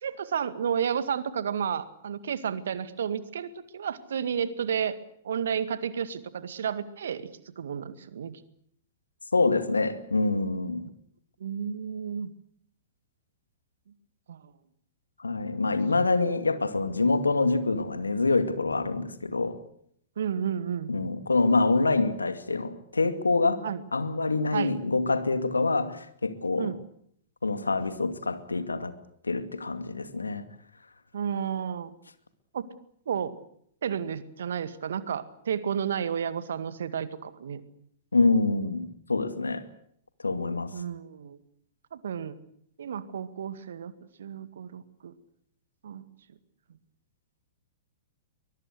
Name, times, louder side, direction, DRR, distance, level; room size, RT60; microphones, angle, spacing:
voice 1, 0.0-5.0 5.2-8.4 11.4-12.3 14.3-14.5 20.2-21.0 23.6-23.8 24.5-24.8 26.6-26.8 31.1-31.9 32.5-32.7 33.1-33.4 33.8-37.6 40.7-41.4 41.9-42.3 42.8-43.9 44.2-45.1 45.8-46.0, right 8 dB, 65° right, 13 dB, 2.0 m, -32 dB
voice 2, 9.3-10.9 15.2-19.6 20.9-23.6 23.9-26.7 27.4-28.9 29.2-30.4 38.1-39.6 40.2-40.7, left 3 dB, 80° left, 11 dB, 2.3 m, -26 dB
23.5 x 22.0 x 7.9 m, 0.66 s
figure-of-eight pair, 105°, 0 cm